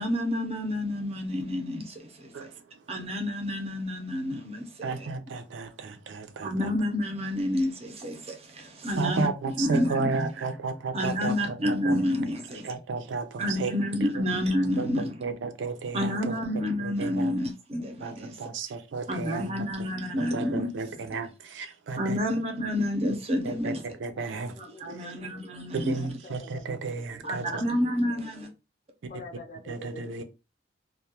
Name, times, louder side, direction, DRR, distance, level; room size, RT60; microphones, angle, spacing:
voice 1, 0.0-2.5 2.9-5.1 6.4-9.3 9.6-10.1 10.9-12.7 13.4-15.1 15.9-18.4 19.1-20.7 22.0-23.8 24.8-26.1 27.2-28.5, left 1 dB, 35° right, 0.5 m, -29 dB
voice 2, 2.3-2.9 4.8-6.7 9.0-12.0 12.6-13.7 14.8-16.4 16.8-17.3 18.0-19.9 20.2-22.2 23.4-24.6 24.9-25.1 25.7-27.6 29.7-30.2, right 4 dB, 90° right, 0.4 m, -33 dB
voice 3, 24.0-25.6 25.9-28.5 29.1-30.2, left 2 dB, 45° left, 0.5 m, -47 dB
2.3 x 2.0 x 2.8 m
head